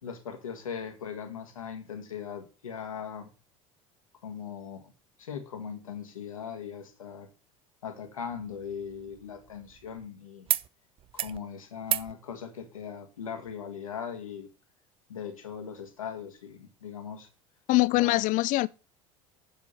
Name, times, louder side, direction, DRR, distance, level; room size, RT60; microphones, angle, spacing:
voice 1, 0.0-3.3 4.2-4.9 5.2-7.3 7.8-10.5 11.1-14.5 15.1-17.3 17.9-18.2, left 7 dB, 85° left, 1.4 m, -39 dB
sound 1, 8.3-10.1 10.5-10.7 11.0-11.4 11.8-12.1 13.5-13.6, right 11 dB, 35° right, 0.4 m, -34 dB
voice 2, 17.7-18.7, left 20 dB, 50° left, 0.5 m, -23 dB
7.2 x 7.1 x 4.2 m
hypercardioid pair, 75°, 17 cm